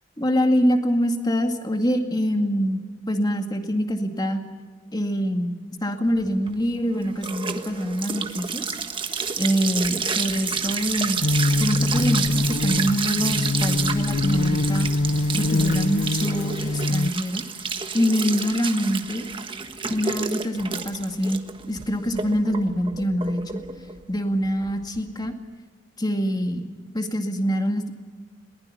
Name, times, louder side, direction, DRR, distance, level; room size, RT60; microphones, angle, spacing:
voice 1, 0.2-4.4 4.9-8.7 9.4-11.2 11.6-14.9 15.3-17.4 17.9-19.3 19.8-21.4 21.7-23.6 24.1-25.3 26.0-26.6 26.9-27.9, equal, 20° left, 5 dB, 2.1 m, -25 dB
sound 1, 6.2-25.3, right 5 dB, 25° right, 1.4 m, -30 dB
sound 2, 11.2-17.1, left 2 dB, 75° left, 0.7 m, -24 dB
22.0 x 20.0 x 7.0 m, 1.6 s
head